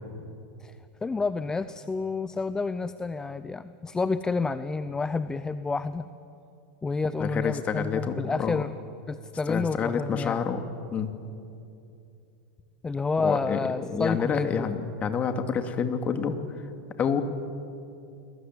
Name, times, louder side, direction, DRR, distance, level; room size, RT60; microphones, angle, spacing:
voice 1, 1.0-6.1 6.8-8.7 9.1-10.4 12.8-14.7, left 4 dB, 15° left, 13 dB, 0.8 m, -29 dB
voice 2, 7.2-8.6 9.5-10.7 10.9-11.2 13.2-13.6 13.9-16.4 17.0-17.2, left 6 dB, 30° left, 7 dB, 2.6 m, -28 dB
29.5 x 21.0 x 9.2 m, 2.7 s
hypercardioid pair, 105°, 5 cm